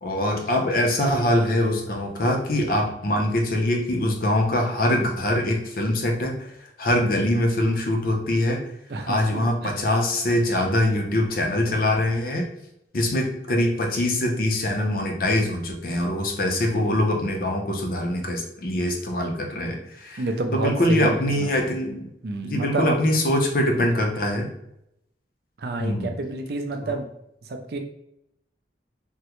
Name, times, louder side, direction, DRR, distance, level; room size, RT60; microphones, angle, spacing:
voice 1, 0.0-8.6 9.1-12.5 12.9-20.2 20.5-22.1 22.4-24.5 25.8-26.1 26.8-26.9, left 1 dB, 50° left, 2 dB, 0.5 m, -23 dB
voice 2, 8.9-9.7 20.2-21.7 22.2-23.0 25.6-27.1 27.4-27.8, right 2 dB, 55° right, 5 dB, 0.4 m, -29 dB
3.5 x 2.1 x 2.9 m, 0.79 s
head